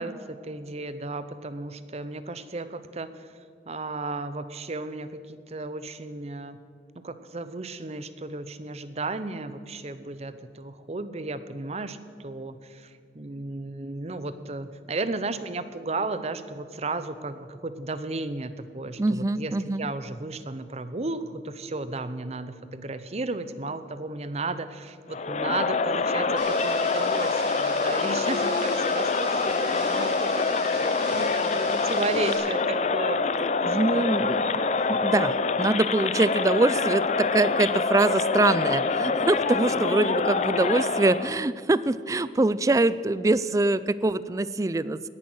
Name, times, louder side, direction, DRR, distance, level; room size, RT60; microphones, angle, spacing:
voice 1, 0.0-3.3 3.7-6.6 7.0-33.2 33.6-34.0, right 3 dB, 35° right, 12 dB, 0.7 m, -34 dB
voice 2, 19.0-19.9 33.6-45.1, right 2 dB, 20° right, 16 dB, 0.4 m, -24 dB
Crowd, 25.1-41.4, left 4 dB, 40° left, 0.5 m, -25 dB
sound 1, 26.4-32.4, right 3 dB, 85° right, 3.8 m, -40 dB
17.5 x 10.5 x 6.2 m, 2.2 s
head